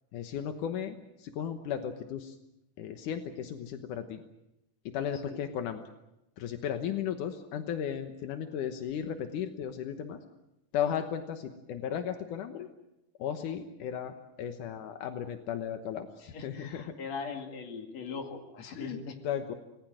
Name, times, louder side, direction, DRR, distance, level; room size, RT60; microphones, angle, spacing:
voice 1, 0.1-2.3 2.8-4.2 4.9-5.8 6.4-10.2 10.7-12.7 13.2-17.0 18.8-19.0 19.2-19.5, left 9 dB, 85° left, 6 dB, 2.7 m, -35 dB
voice 2, 16.3-19.2, left 5 dB, 60° left, 4 dB, 3.4 m, -40 dB
27.0 x 20.0 x 7.7 m, 0.90 s
omnidirectional pair, 3.6 m